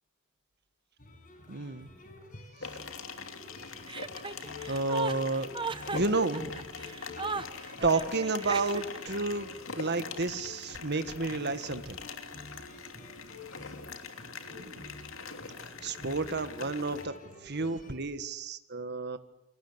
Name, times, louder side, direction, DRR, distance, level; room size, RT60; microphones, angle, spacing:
sound 1, 1.0-17.9, left 3 dB, 40° left, 6.3 m, -49 dB
voice 1, 1.5-1.9 2.6-2.7 4.7-5.5 5.9-6.6 7.4-7.5 7.8-12.0 14.5-14.9 15.8-17.1 17.4-19.2, right 3 dB, 50° right, 11 dB, 1.7 m, -31 dB
sound 2, 2.6-17.0, left 5 dB, 65° left, 2.8 m, -43 dB
Chuckle chortle, 3.9-9.1, right 4 dB, 25° right, 1.0 m, -37 dB
29.0 x 23.5 x 8.2 m, 0.83 s
head